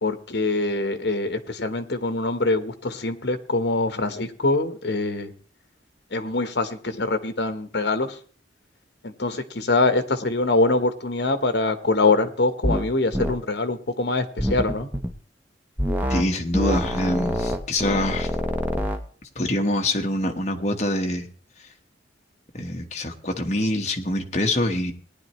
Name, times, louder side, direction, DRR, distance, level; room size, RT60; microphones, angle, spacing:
voice 1, 0.0-5.3 6.1-8.1 9.0-14.9, left 2 dB, 70° left, 10 dB, 1.1 m, -24 dB
sound 1, 12.6-12.9 13.1-13.4 14.4-15.1 15.8-16.3 16.5-19.0, equal, 10° right, 0.8 m, -25 dB
voice 2, 16.1-18.3 19.3-21.3 21.6-21.7 22.5-24.9, left 1 dB, 40° left, 3 dB, 1.3 m, -25 dB
18.5 x 10.0 x 3.1 m, 0.43 s
head